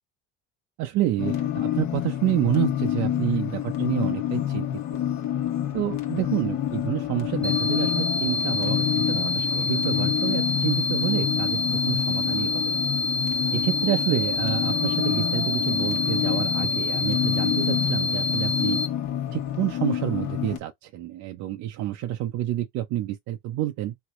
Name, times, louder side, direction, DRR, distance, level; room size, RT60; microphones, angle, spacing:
voice 1, 0.8-5.0 5.7-11.6 11.9-12.8 13.5-18.8 19.3-23.9, right 14 dB, 60° right, 0.6 m, -29 dB
sound 1, 1.2-20.6, left 11 dB, 60° left, 1.1 m, -28 dB
sound 2, 7.4-18.9, left 2 dB, 5° left, 0.8 m, -27 dB
3.1 x 2.8 x 3.0 m
supercardioid pair, 75°, 32 cm